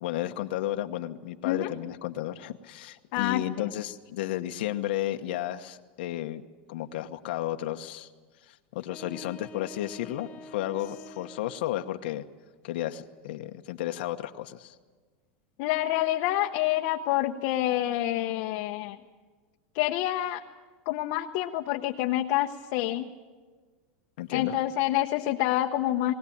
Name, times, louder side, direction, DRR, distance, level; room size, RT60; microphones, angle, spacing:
voice 1, 0.0-6.4 6.7-8.1 8.5-12.2 12.6-14.8 24.2-24.5, left 13 dB, 75° left, 6 dB, 1.1 m, -33 dB
voice 2, 3.1-3.7 15.6-19.0 19.7-20.4 20.9-23.0 24.3-26.1, left 14 dB, 50° left, 2 dB, 0.9 m, -27 dB
sound 1, 8.8-11.8, left 1 dB, 20° left, 1.6 m, -47 dB
21.0 x 18.0 x 8.6 m, 1.4 s
supercardioid pair, 155°, 6 cm